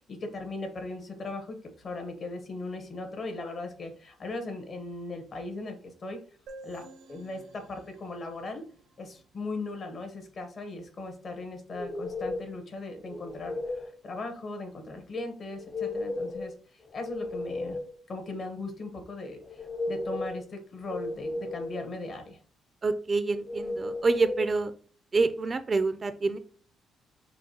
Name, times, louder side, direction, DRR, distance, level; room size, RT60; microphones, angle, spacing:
voice 1, 0.1-5.8 6.0-6.2 6.6-6.8 7.1-8.6 9.0-17.8 18.1-22.4, left 2 dB, 50° left, 6 dB, 1.1 m, -38 dB
sound 1, 6.5-10.0, right 2 dB, 80° right, 0.7 m, -51 dB
sound 2, 11.7-12.6 13.1-13.9 15.5-16.5 16.9-18.0 19.4-20.4 20.9-21.9 23.5-24.5, left 2 dB, 30° left, 0.5 m, -34 dB
voice 2, 22.8-24.7 25.1-26.4, right 3 dB, 35° right, 11 dB, 0.4 m, -27 dB
5.6 x 2.2 x 2.8 m, 0.42 s
cardioid pair, 90°, 0 cm